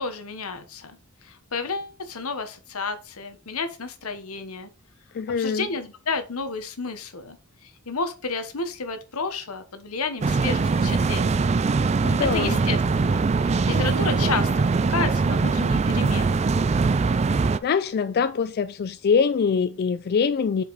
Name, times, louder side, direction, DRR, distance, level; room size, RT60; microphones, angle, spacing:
voice 1, 0.0-4.7 5.4-11.4 12.0-16.4, left 4 dB, 85° left, 1.1 m, -32 dB
voice 2, 5.1-5.7 12.0-12.6 17.6-20.6, left 6 dB, 50° left, 0.3 m, -23 dB
sound 1, 10.2-17.6, right 4 dB, 30° right, 0.4 m, -22 dB
Acoustic guitar, 13.7-16.5, right 2 dB, 55° right, 2.0 m, -39 dB
5.2 x 5.1 x 4.0 m
head